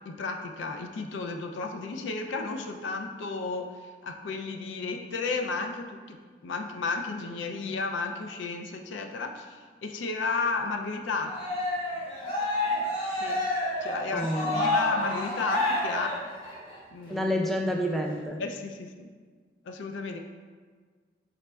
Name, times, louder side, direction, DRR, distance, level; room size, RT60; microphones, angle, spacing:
voice 1, 0.1-11.3 13.2-13.4 13.8-16.2 16.9-17.3 18.4-19.1 19.6-20.2, left 4 dB, 90° left, 4 dB, 0.4 m, -33 dB
Cheering, 11.3-16.7, left 1 dB, 30° left, 1.0 m, -29 dB
voice 2, 14.1-14.8 17.1-18.4, equal, ahead, 0 dB, 0.3 m, -29 dB
4.9 x 4.2 x 2.2 m, 1.5 s
head